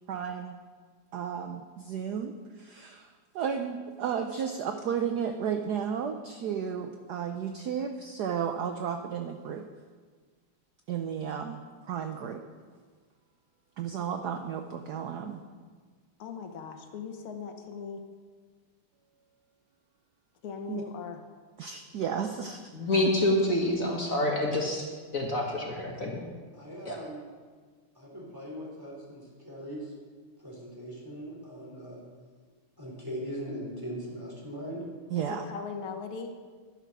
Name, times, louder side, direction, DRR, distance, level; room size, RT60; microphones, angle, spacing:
voice 1, 0.1-0.6 1.1-3.1 3.3-9.7 10.9-12.4 13.8-15.4 20.7-20.8 21.6-22.6 23.0-23.1 35.1-35.5, right 7 dB, 70° right, 6 dB, 1.0 m, -33 dB
voice 2, 16.2-18.0 20.4-21.2 22.9-23.0 35.3-36.3, left 5 dB, 75° left, 5 dB, 1.9 m, -39 dB
voice 3, 22.7-24.9 25.1-26.2 26.9-27.0, left 1 dB, 40° left, -1 dB, 1.9 m, -27 dB
voice 4, 26.6-27.2 28.0-29.9 30.4-32.0 32.8-34.8, equal, 10° right, -4 dB, 3.5 m, -40 dB
11.5 x 10.5 x 6.1 m, 1.5 s
omnidirectional pair, 2.4 m